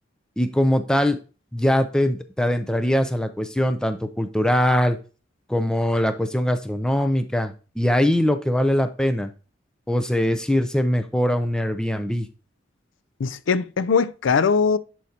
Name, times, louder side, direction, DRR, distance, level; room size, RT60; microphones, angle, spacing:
voice 1, 0.4-1.2 1.5-5.0 5.5-9.3 9.9-12.3, equal, 5° left, 0.5 m, -22 dB
voice 2, 13.2-14.8, left 5 dB, 85° left, 0.4 m, -21 dB
10.0 x 4.6 x 2.8 m
head